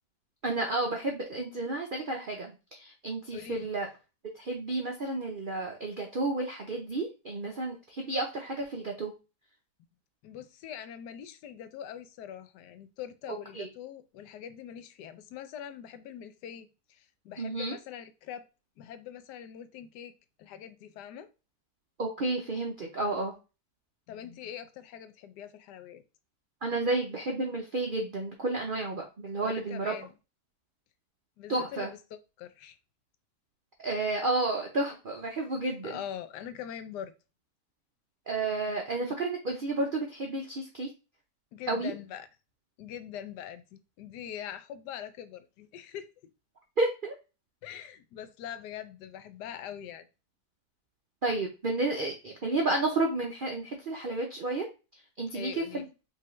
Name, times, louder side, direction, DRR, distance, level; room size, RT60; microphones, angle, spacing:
voice 1, 0.4-3.9 4.4-9.1 13.3-13.7 17.4-17.8 22.0-23.3 26.6-29.9 31.5-31.9 33.8-36.0 38.3-40.9 41.7-41.9 46.8-47.1 51.2-54.7 55.2-55.9, right 2 dB, 65° right, 1 dB, 0.5 m, -31 dB
voice 2, 3.3-3.7 10.2-18.5 18.8-20.1 20.4-21.3 24.1-26.0 29.4-30.1 31.4-32.0 32.4-32.8 35.8-37.1 41.5-42.3 42.8-46.1 47.6-50.1 55.3-55.9, left 9 dB, 80° left, 11 dB, 1.1 m, -43 dB
5.3 x 2.8 x 3.1 m, 0.30 s
omnidirectional pair, 1.8 m